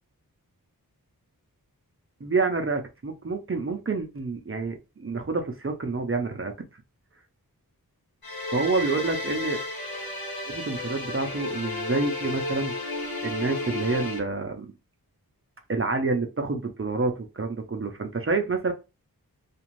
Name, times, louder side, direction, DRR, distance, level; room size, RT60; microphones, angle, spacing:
voice 1, 2.2-6.5 8.5-9.6 10.5-12.7 13.2-14.7 15.7-18.7, right 3 dB, 35° right, 5 dB, 0.6 m, -28 dB
sound 1, 8.2-14.2, left 2 dB, 70° left, 1.2 m, -32 dB
2.5 x 2.4 x 3.0 m, 0.27 s
wide cardioid pair, 40°, 37 cm